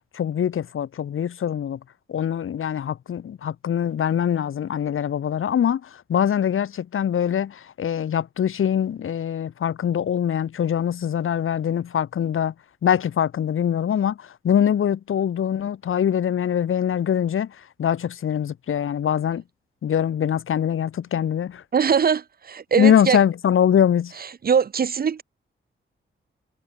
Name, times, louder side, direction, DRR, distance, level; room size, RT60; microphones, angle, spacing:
voice 1, 0.1-1.8 2.1-12.5 12.8-19.4 19.8-21.6 22.8-24.1, left 9 dB, 75° left, 1.3 m, -23 dB
voice 2, 21.7-23.2 24.4-25.2, right 6 dB, 45° right, 0.7 m, -21 dB
wide cardioid pair, 110°, 21 cm